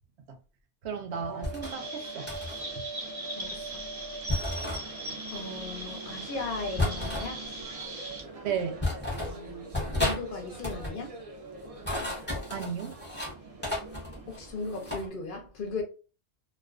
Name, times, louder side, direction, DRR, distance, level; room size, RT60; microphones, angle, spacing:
voice 1, 0.8-2.3 8.4-8.8 12.5-12.9, right 7 dB, 75° right, 0.9 m, -34 dB
sound 1, 1.1-15.0, right 3 dB, 50° right, 0.4 m, -44 dB
sound 2, 1.4-1.8 2.3-2.6 4.3-4.8 6.8-7.3 8.2-8.3 8.8-9.4 9.7-10.2 10.5-11.0 11.6-13.3 13.6-15.1, left 2 dB, 10° left, 0.7 m, -32 dB
Chirp tweet, 1.6-8.2, right 1 dB, 30° right, 0.8 m, -40 dB
voice 2, 5.3-7.4 9.1-9.7 10.0-11.1 14.3-15.8, left 3 dB, 55° left, 0.7 m, -37 dB
2.3 x 2.3 x 2.3 m
omnidirectional pair, 1.2 m